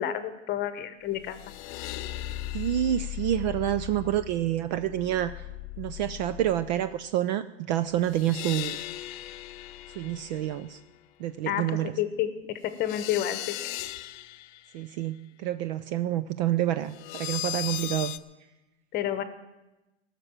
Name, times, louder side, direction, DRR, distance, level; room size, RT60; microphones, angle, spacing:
voice 1, 0.0-1.4 11.5-13.6 18.9-19.2, left 11 dB, 25° left, 11 dB, 1.0 m, -30 dB
sound 1, 1.2-7.0 8.0-10.8 12.7-14.7 16.9-18.2, left 16 dB, 40° left, 0.6 m, -38 dB
voice 2, 2.5-5.3 5.8-8.8 10.0-10.8 11.2-11.9 14.7-18.1, right 12 dB, 40° right, 14 dB, 0.4 m, -28 dB
17.0 x 6.7 x 8.9 m, 1.0 s
hypercardioid pair, 135°, 37 cm